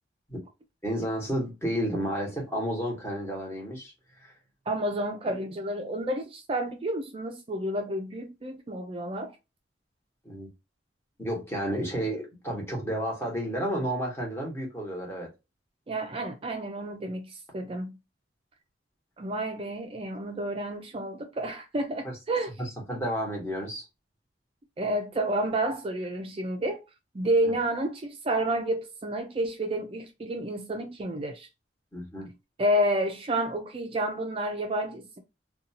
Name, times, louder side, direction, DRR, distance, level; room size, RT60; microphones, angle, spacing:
voice 1, 0.8-3.9 4.2-4.3 10.2-10.5 11.2-15.3 22.0-22.1 22.6-23.8 31.9-32.3, equal, 15° left, 1.2 m, -31 dB
voice 2, 4.7-9.3 15.9-18.0 19.2-22.5 24.8-26.8 27.1-31.5 32.6-35.2, right 1 dB, 30° right, 0.4 m, -30 dB
2.6 x 2.3 x 2.7 m
head